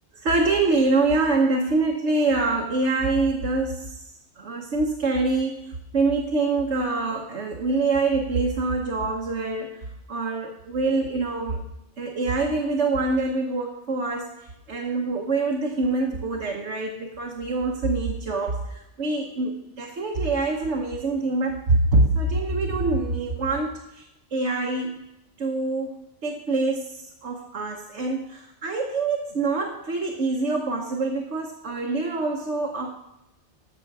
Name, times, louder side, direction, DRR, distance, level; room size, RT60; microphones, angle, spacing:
voice 1, 0.1-4.0 4.4-11.6 12.0-14.3 14.7-24.0 24.3-25.1 25.4-32.9, right 3 dB, 90° right, 0 dB, 1.4 m, -25 dB
14.5 x 6.3 x 4.7 m, 0.88 s
omnidirectional pair, 1.2 m